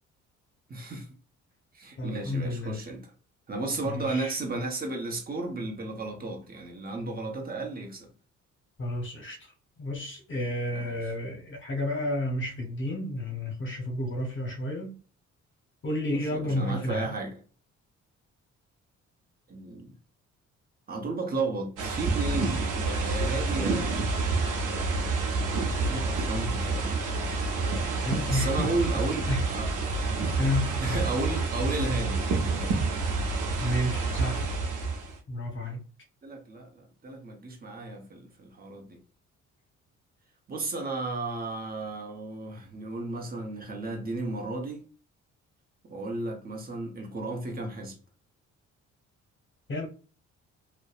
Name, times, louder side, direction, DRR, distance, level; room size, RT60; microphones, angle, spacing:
voice 1, 0.7-1.1 1.7-3.1 3.5-8.1 10.7-10.9 16.1-17.4 19.5-19.9 20.9-24.2 25.2-27.0 28.3-29.7 30.8-32.8 36.2-39.0 40.5-44.8 45.8-48.0, right 2 dB, 30° right, 0.9 m, -34 dB
voice 2, 2.0-2.8 3.8-4.4 8.8-9.5 9.8-14.9 15.8-17.1 28.0-28.8 29.3-29.5 30.4-30.8 33.6-34.5 35.3-35.8 49.7-49.9, left 1 dB, 40° left, 0.8 m, -31 dB
sound 1, 21.8-35.2, right 3 dB, 85° right, 0.7 m, -28 dB
2.6 x 2.1 x 2.3 m
cardioid pair, 90°, 30 cm